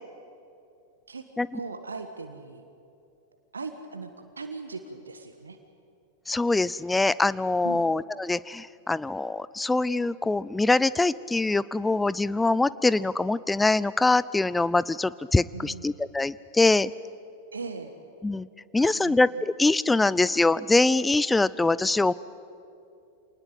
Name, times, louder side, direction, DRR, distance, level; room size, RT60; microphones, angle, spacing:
voice 1, 1.5-2.6 3.5-5.6 7.6-7.8 15.5-15.8 17.5-17.9 18.8-19.2, right 4 dB, 75° right, 8 dB, 1.4 m, -39 dB
voice 2, 6.3-16.9 18.2-18.5 18.7-22.1, left 2 dB, 10° left, 19 dB, 0.5 m, -23 dB
26.0 x 19.5 x 7.9 m, 2.6 s
figure-of-eight pair, 90°, 0 cm